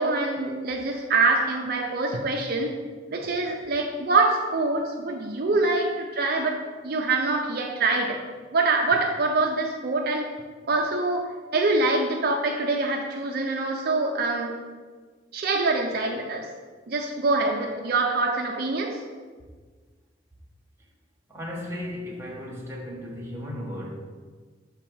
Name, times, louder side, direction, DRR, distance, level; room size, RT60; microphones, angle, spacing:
voice 1, 0.0-2.7 3.1-6.6 6.8-8.2 8.5-10.3 10.7-14.6 15.3-16.5 16.9-19.0, right 3 dB, 55° right, 1 dB, 0.5 m, -25 dB
voice 2, 21.3-23.9, left 1 dB, 15° right, -3 dB, 1.1 m, -35 dB
5.8 x 3.6 x 6.0 m, 1.5 s
head